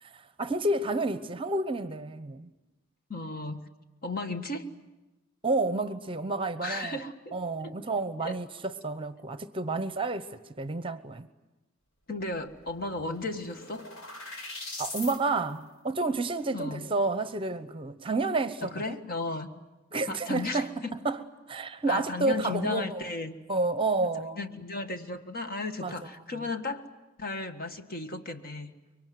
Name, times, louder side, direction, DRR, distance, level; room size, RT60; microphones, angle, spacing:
voice 1, 0.0-2.5 5.4-7.0 7.3-10.3 10.6-11.3 14.8-19.0 19.9-20.7 21.0-21.2 21.5-23.0 23.5-24.4 25.8-25.9, right 2 dB, 25° right, 0.9 m, -30 dB
voice 2, 3.1-3.6 4.0-4.7 6.6-7.7 8.2-8.4 12.1-13.9 16.5-16.9 18.6-19.5 20.1-20.9 21.9-23.4 24.0-24.1 24.3-26.9 27.2-28.7, left 2 dB, 45° left, 1.6 m, -35 dB
sound 1, 12.3-12.4 12.7-15.2, left 2 dB, 70° left, 4.1 m, -41 dB
25.5 x 23.5 x 9.4 m
head